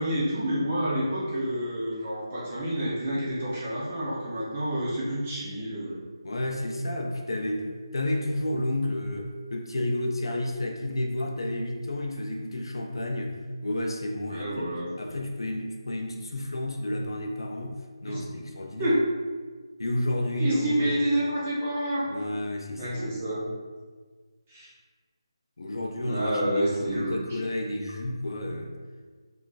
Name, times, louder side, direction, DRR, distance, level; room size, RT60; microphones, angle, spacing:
voice 1, 0.0-6.0 14.3-14.9 18.1-18.2 18.8-19.0 20.4-22.1 22.8-23.4 24.5-24.7 26.0-27.1, right 1 dB, 15° right, -8 dB, 0.3 m, -28 dB
voice 2, 6.2-14.7 15.0-19.0 19.8-21.0 22.1-23.2 25.6-28.7, left 1 dB, 60° left, 2 dB, 0.4 m, -31 dB
2.4 x 2.3 x 3.8 m, 1.5 s
figure-of-eight pair, 180°, 3 cm